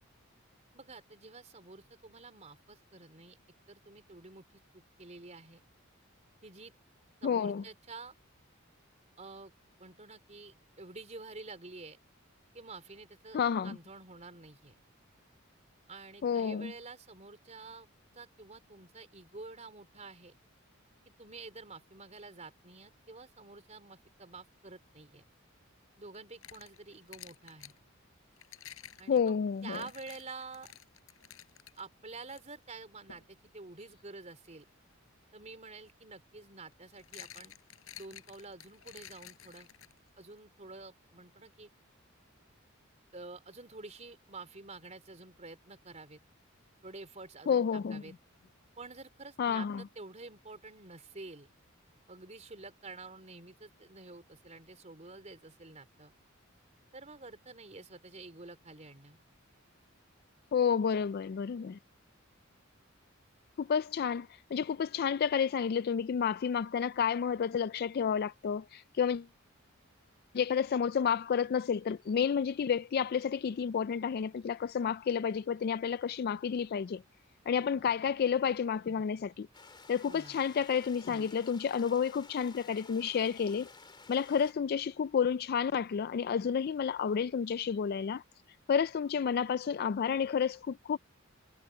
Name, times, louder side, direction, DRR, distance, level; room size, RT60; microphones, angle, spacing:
voice 1, 0.7-3.4 3.7-5.6 6.4-6.7 7.2-8.1 9.2-9.5 9.8-12.0 12.5-14.8 15.9-17.9 18.1-20.3 21.2-25.2 26.0-27.7 29.0-29.4 29.6-30.7 31.8-34.7 35.3-37.5 37.9-39.7 40.2-41.7 43.1-46.2 46.8-48.1 48.8-51.5 52.1-56.1 56.9-59.3 77.6-77.8 80.0-80.4, right 3 dB, 35° right, 4.0 m, -49 dB
voice 2, 7.2-7.6 13.3-13.8 16.2-16.7 29.1-29.8 47.5-48.0 49.4-49.8 60.5-61.8 63.6-69.3 70.3-77.0 77.5-79.5 79.9-83.7 84.1-88.2 88.7-91.0, left 7 dB, 50° left, 0.3 m, -30 dB
sound 1, 26.1-27.8 28.4-31.8 32.3-32.4 33.1-33.3 35.4-35.5 36.7-40.2, left 10 dB, 80° left, 6.9 m, -52 dB
sound 2, 79.5-84.5, left 4 dB, 20° left, 2.9 m, -54 dB
head